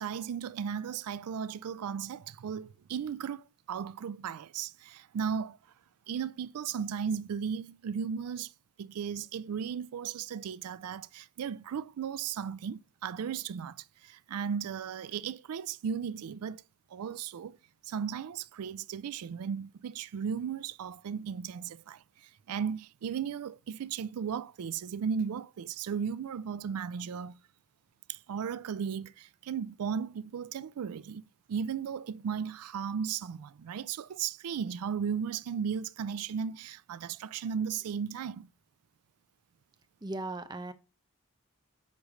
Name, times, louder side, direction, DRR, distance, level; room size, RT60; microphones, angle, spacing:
voice 1, 0.0-5.6 6.1-8.5 8.8-16.6 16.9-17.6 17.8-27.4 28.1-31.2 31.5-38.5, right 7 dB, 85° right, 0.4 m, -36 dB
voice 2, 40.0-40.7, right 2 dB, 20° right, 0.5 m, -37 dB
8.3 x 3.2 x 6.3 m
head